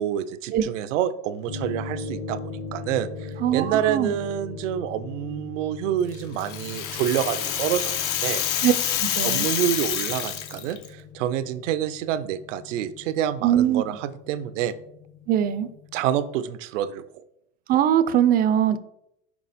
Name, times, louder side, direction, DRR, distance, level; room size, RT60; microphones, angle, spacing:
voice 1, 0.0-2.4 2.7-8.4 9.2-14.8 15.9-17.0, right 10 dB, 85° right, 14 dB, 0.6 m, -27 dB
sound 1, 1.5-16.0, left 4 dB, 55° left, 1.1 m, -40 dB
voice 2, 3.4-4.2 8.6-8.7 9.0-9.5 13.4-13.8 15.3-15.7 17.7-18.8, right 10 dB, 25° right, 13 dB, 0.4 m, -21 dB
Rattle (instrument), 6.1-10.9, left 10 dB, 75° left, 0.9 m, -27 dB
5.9 x 4.7 x 4.1 m, 0.78 s
supercardioid pair, 120°, 36 cm